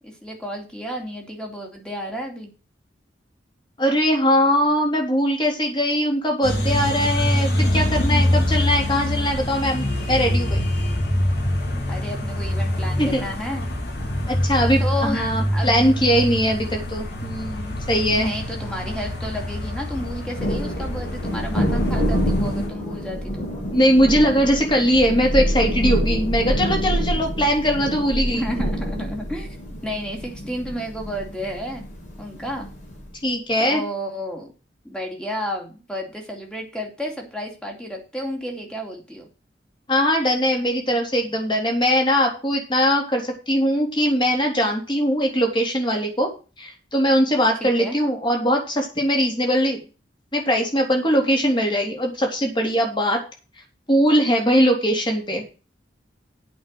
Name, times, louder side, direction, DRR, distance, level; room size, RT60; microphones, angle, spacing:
voice 1, 0.0-2.5 11.9-13.6 14.8-15.9 18.1-23.5 27.4-27.5 28.3-29.6 29.8-31.8 32.2-32.7 33.6-34.5 34.8-39.3 47.6-48.0, equal, 5° left, 1 dB, 2.7 m, -31 dB
voice 2, 3.8-10.6 13.0-13.2 14.3-18.3 23.7-28.5 33.2-33.8 39.9-46.3 46.6-49.8 50.3-53.2 53.9-55.4, equal, 25° left, 1 dB, 3.5 m, -21 dB
sound 1, 6.4-22.7, left 1 dB, 60° left, 3.7 m, -25 dB
Thunder, 19.9-33.1, equal, 40° left, 5.1 m, -26 dB
8.6 x 5.9 x 7.8 m, 0.33 s
head